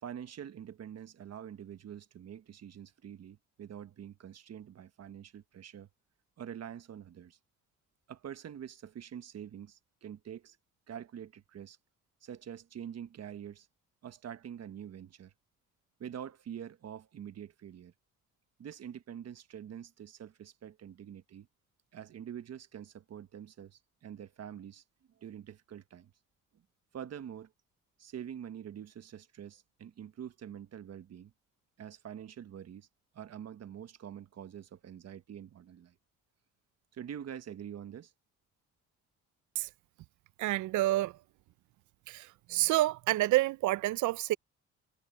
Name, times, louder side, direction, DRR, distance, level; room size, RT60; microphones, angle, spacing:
voice 1, 0.0-5.9 6.4-7.4 8.1-10.6 10.9-11.8 12.2-13.7 14.0-15.3 16.0-17.9 18.6-21.5 21.9-24.8 25.2-26.1 26.9-27.5 28.0-31.3 31.8-32.9 33.1-35.9 36.9-38.1, right 9 dB, 55° right, 1.4 m, -45 dB
voice 2, 40.4-41.2 42.1-44.4, right 17 dB, 75° right, 0.5 m, -28 dB
cardioid pair, 90°, 30 cm